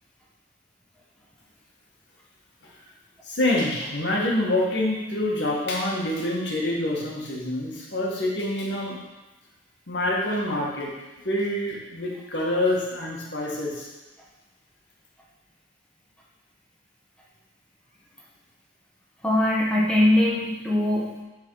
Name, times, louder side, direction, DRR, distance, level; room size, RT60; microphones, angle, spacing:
voice 1, 3.3-9.0 9.9-10.9 11.2-13.9, left 1 dB, 70° left, -3 dB, 1.8 m, -26 dB
voice 2, 19.2-21.2, left 1 dB, 5° left, -4 dB, 1.5 m, -21 dB
8.6 x 4.2 x 4.8 m, 1.1 s
head